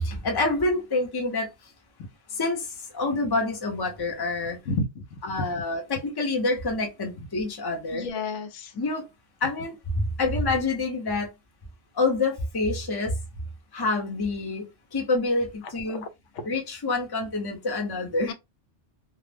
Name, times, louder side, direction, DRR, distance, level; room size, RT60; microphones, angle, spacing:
voice 1, 0.0-1.5 2.3-4.6 5.2-8.1 8.7-9.1 9.4-11.3 11.9-13.2 13.7-16.0 16.4-18.3, left 2 dB, 25° left, 0.6 m, -27 dB
voice 2, 4.7-5.2 7.2-7.3 7.9-8.7 15.9-16.1 16.3-16.4 18.3-18.4, left 3 dB, 85° left, 0.9 m, -31 dB
2.4 x 2.0 x 3.3 m
omnidirectional pair, 1.2 m